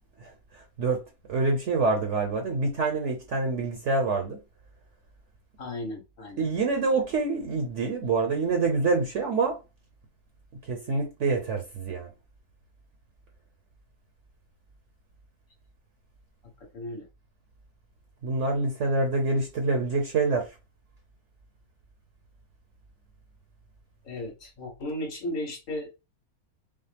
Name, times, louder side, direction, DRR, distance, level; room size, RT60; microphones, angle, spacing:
voice 1, 0.2-1.0 1.3-4.4 6.4-9.6 10.6-12.1 18.2-20.6, right 3 dB, 55° right, 1.1 m, -26 dB
voice 2, 5.6-6.4 16.7-17.1 24.0-25.9, left 1 dB, 60° left, 1.7 m, -35 dB
5.5 x 2.0 x 3.4 m
omnidirectional pair, 1.6 m